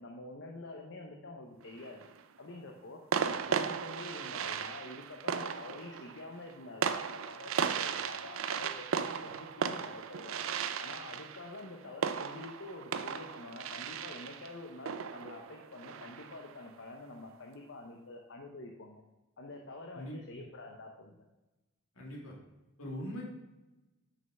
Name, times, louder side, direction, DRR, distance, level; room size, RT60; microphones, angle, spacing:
voice 1, 0.0-2.0 2.4-10.5 10.8-19.0 19.4-21.2, left 2 dB, 60° left, 2 dB, 0.9 m, -47 dB
sound 1, 1.6-2.2 3.1-16.5, right 6 dB, 70° right, 0.5 m, -36 dB
voice 2, 19.9-20.4 22.0-22.4 22.8-23.2, equal, 80° left, -2 dB, 2.2 m, -41 dB
6.4 x 5.6 x 5.5 m, 1.1 s
head